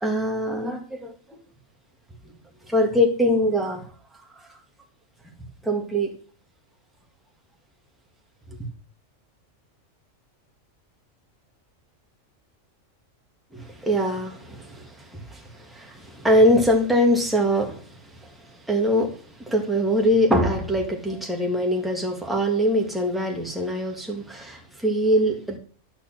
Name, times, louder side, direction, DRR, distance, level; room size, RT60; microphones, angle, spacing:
voice 1, 0.0-1.4 2.7-3.8 5.6-6.1 13.5-17.9 18.2-18.3 18.7-19.1 19.4-25.6, equal, ahead, 0 dB, 1.7 m, -23 dB
11.5 x 4.4 x 7.5 m, 0.43 s
omnidirectional pair, 1.4 m